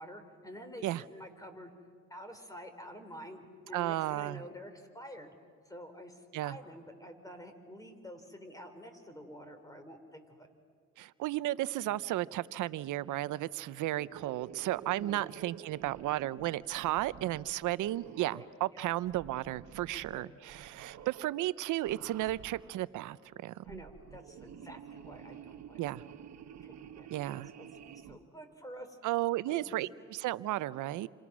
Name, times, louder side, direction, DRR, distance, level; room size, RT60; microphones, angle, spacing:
voice 1, 0.0-1.7 2.1-5.3 5.7-10.5 11.9-12.0 14.8-15.3 18.3-18.5 18.7-18.9 19.9-20.4 23.6-25.8 26.6-29.0 29.5-29.8, equal, 10° left, 7 dB, 3.9 m, -49 dB
voice 2, 3.7-4.4 6.3-6.6 11.0-23.2 23.4-23.8 25.8-26.0 27.1-27.5 29.0-31.1, right 15 dB, 85° right, 17 dB, 0.7 m, -34 dB
sound 1, 13.9-18.6 19.0-20.2 20.5-21.3 21.8-22.8 23.5-28.2, right 9 dB, 60° right, 1.2 m, -51 dB
29.0 x 26.5 x 6.2 m, 2.2 s
cardioid pair, 90°, 30 cm